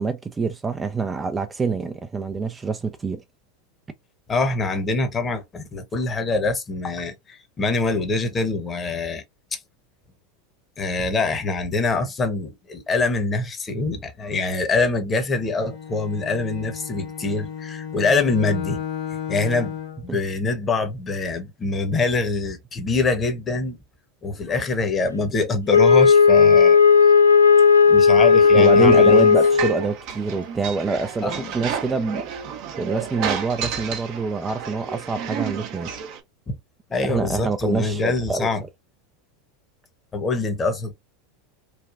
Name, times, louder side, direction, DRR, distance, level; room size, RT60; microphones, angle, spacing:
voice 1, 0.0-3.2 20.1-20.2 28.5-32.2 32.8-35.9 37.1-38.5, right 4 dB, 20° right, 0.4 m, -25 dB
voice 2, 4.3-9.2 9.5-9.6 10.8-18.8 19.3-19.8 20.0-23.8 24.2-26.8 27.9-29.3 31.2-31.6 36.9-38.6 40.1-40.9, left 3 dB, 25° left, 1.0 m, -24 dB
Bowed string instrument, 15.3-20.1, left 8 dB, 45° left, 1.3 m, -34 dB
Wind instrument woodwind instrument, 25.7-29.9, left 5 dB, 90° left, 0.3 m, -14 dB
sound 1, 28.3-36.2, right 7 dB, 55° right, 0.8 m, -32 dB
3.2 x 2.3 x 2.5 m
figure-of-eight pair, 85°, 0 cm